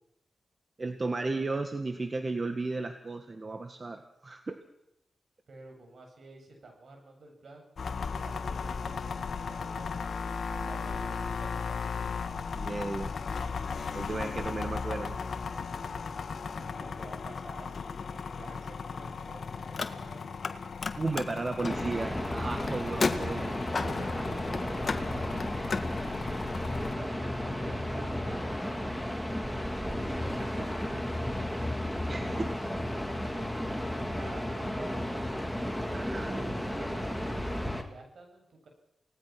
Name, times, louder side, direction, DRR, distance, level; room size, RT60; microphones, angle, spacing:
voice 1, 0.8-4.6 12.5-13.2 13.9-15.2 21.0-23.6 32.1-32.4 35.9-36.4, right 3 dB, 45° right, 7 dB, 1.8 m, -34 dB
voice 2, 5.5-7.7 8.1-10.1 10.5-11.9 16.6-20.2 23.6-26.2 27.0-29.1 30.1-31.7 32.3-32.7 34.0-35.3 35.8-38.7, right 2 dB, 70° right, 3 dB, 7.6 m, -49 dB
sound 1, 7.8-26.9, left 5 dB, 70° left, 1.7 m, -37 dB
Car, 19.6-20.5 20.8-25.9, left 4 dB, 55° left, 1.7 m, -34 dB
sound 2, 21.7-37.8, left 1 dB, ahead, 3.3 m, -33 dB
28.5 x 19.0 x 6.1 m, 0.82 s
cardioid pair, 55°, 0 cm